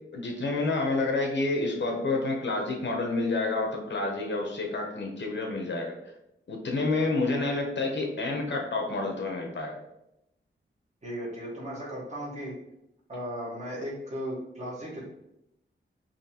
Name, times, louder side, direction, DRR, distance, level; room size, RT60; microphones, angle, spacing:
voice 1, 0.0-5.9 6.5-9.8, left 3 dB, 65° left, 1 dB, 0.7 m, -29 dB
voice 2, 11.0-12.5 13.1-15.0, equal, 35° right, -5 dB, 1.3 m, -36 dB
4.0 x 2.8 x 2.8 m, 0.83 s
wide cardioid pair, 175°, 21 cm